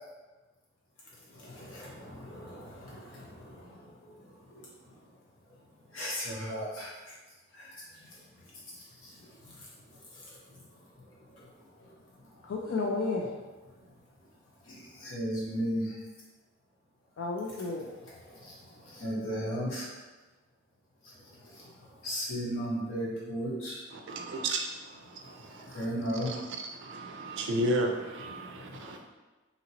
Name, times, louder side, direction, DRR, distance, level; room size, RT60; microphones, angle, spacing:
voice 1, 1.5-3.0 5.9-6.9 15.0-15.9 19.0-19.9 22.0-23.8 25.7-26.3, equal, 75° left, -6 dB, 1.1 m, -34 dB
voice 2, 12.4-13.3 17.2-17.9, left 3 dB, 60° left, -2 dB, 0.4 m, -32 dB
voice 3, 23.9-25.8 26.3-26.4 26.8-29.0, right 1 dB, 60° right, 3 dB, 0.4 m, -33 dB
2.8 x 2.8 x 2.8 m, 1.2 s
head